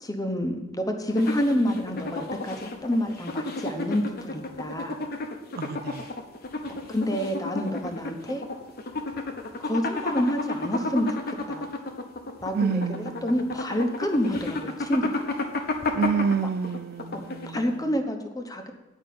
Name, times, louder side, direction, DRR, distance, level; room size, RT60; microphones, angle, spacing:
voice 1, 0.0-5.0 6.7-8.4 9.6-11.7 12.4-15.2 17.5-18.7, equal, 20° left, 0.9 m, -28 dB
sound 1, 1.1-18.0, left 2 dB, 50° left, 0.9 m, -32 dB
voice 2, 5.6-6.1 12.5-13.3 15.9-17.8, right 6 dB, 50° right, 0.3 m, -28 dB
9.3 x 5.2 x 6.9 m
head